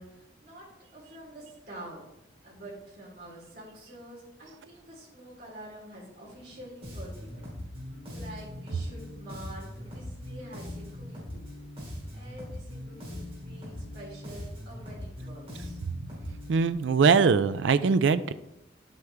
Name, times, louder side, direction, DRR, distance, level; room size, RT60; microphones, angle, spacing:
voice 1, 0.0-2.0 2.4-7.5 8.1-11.6 12.1-15.8, right 1 dB, 60° right, -6 dB, 3.6 m, -47 dB
Bass guitar, 6.8-16.7, left 1 dB, 30° right, 3.2 m, -41 dB
voice 2, 16.5-18.3, right 5 dB, 85° right, 13 dB, 0.4 m, -22 dB
10.0 x 8.2 x 3.4 m, 0.88 s
head